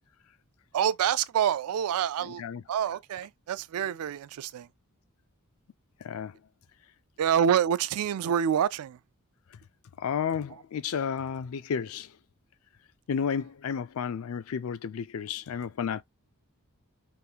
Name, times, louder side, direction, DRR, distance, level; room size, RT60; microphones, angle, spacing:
voice 1, 0.7-2.4 2.7-4.7 7.2-9.0, right 9 dB, 75° right, 0.3 m, -27 dB
voice 2, 2.2-2.6 6.0-6.4 10.0-12.1 13.1-16.0, left 7 dB, 70° left, 0.4 m, -32 dB
3.6 x 2.4 x 2.7 m
head